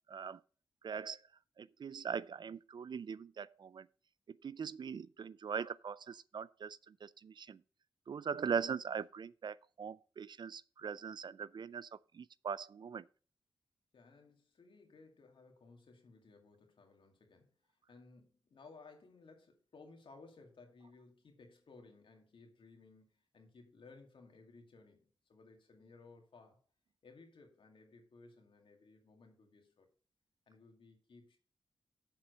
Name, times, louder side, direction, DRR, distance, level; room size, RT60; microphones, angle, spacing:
voice 1, 0.1-0.4 0.8-1.2 1.6-3.9 4.3-7.6 8.1-11.9 12.1-13.1, right 6 dB, 55° right, 0.4 m, -41 dB
voice 2, 13.9-26.6 27.0-29.9 30.5-31.4, left 3 dB, 70° left, 2.2 m, -59 dB
7.2 x 4.4 x 6.6 m
cardioid pair, 50°, 9 cm